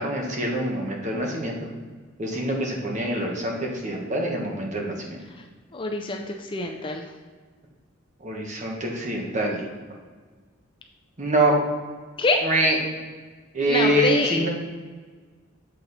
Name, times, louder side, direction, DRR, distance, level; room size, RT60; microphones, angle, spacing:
voice 1, 0.0-1.7 2.2-5.2 8.2-9.6 11.2-11.6 12.4-12.8 13.5-14.5, right 1 dB, 35° right, 0 dB, 1.2 m, -25 dB
voice 2, 5.7-7.1 12.2-12.4 13.6-14.5, left 2 dB, 25° left, 3 dB, 0.4 m, -26 dB
7.8 x 4.2 x 4.0 m, 1.5 s
head